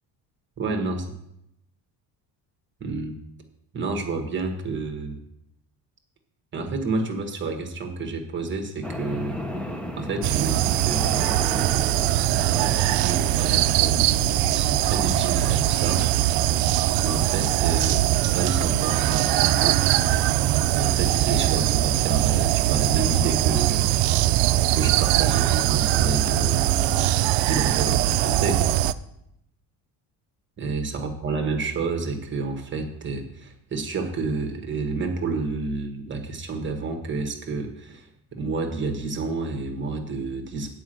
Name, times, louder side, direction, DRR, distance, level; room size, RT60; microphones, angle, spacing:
voice 1, 0.6-1.0 2.8-3.2 3.7-5.2 6.5-9.4 10.0-11.1 12.0-14.1 14.5-16.1 17.0-19.8 20.7-23.8 24.7-28.7 30.6-40.7, right 3 dB, 25° right, 4 dB, 1.2 m, -30 dB
sound 1, 8.8-28.3, left 1 dB, 5° left, 0.5 m, -38 dB
sound 2, 10.2-28.9, right 14 dB, 80° right, 0.5 m, -21 dB
9.3 x 5.1 x 7.7 m, 0.80 s
cardioid pair, 160°, 42 cm